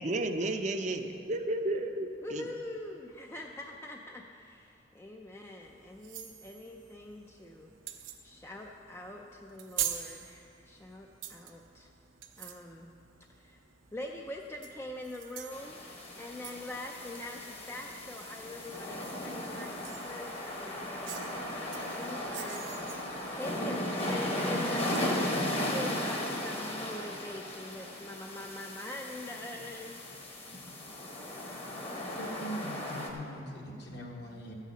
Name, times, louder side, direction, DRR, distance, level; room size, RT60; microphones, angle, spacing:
voice 1, 0.0-2.4, right 2 dB, 40° right, 6 dB, 0.5 m, -32 dB
voice 2, 2.2-7.7 8.2-11.9 12.4-13.0 13.3-13.6 13.9-15.9 16.2-21.2 21.9-22.7 23.3-25.4 25.7-30.0, left 1 dB, 15° left, 1 dB, 0.4 m, -44 dB
sound 1, 5.6-25.1, right 10 dB, 90° right, 0.8 m, -46 dB
sound 2, 15.5-33.1, left 1 dB, 30° left, 1.2 m, -36 dB
voice 3, 32.1-34.5, equal, 60° left, -1 dB, 1.6 m, -41 dB
13.0 x 5.7 x 8.3 m, 2.8 s
head